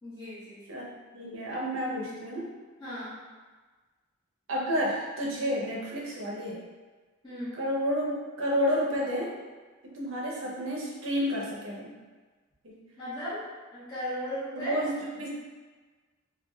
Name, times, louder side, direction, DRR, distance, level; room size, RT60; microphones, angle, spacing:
voice 1, 0.0-0.6 2.8-3.2 7.2-7.5 13.0-13.5 13.7-14.7, equal, 20° left, -15 dB, 1.2 m, -36 dB
voice 2, 1.1-2.5 4.5-6.6 7.5-9.4 9.8-11.9 12.6-12.8 14.5-15.3, equal, 65° right, -3 dB, 0.8 m, -30 dB
3.2 x 2.5 x 3.1 m, 1.3 s
head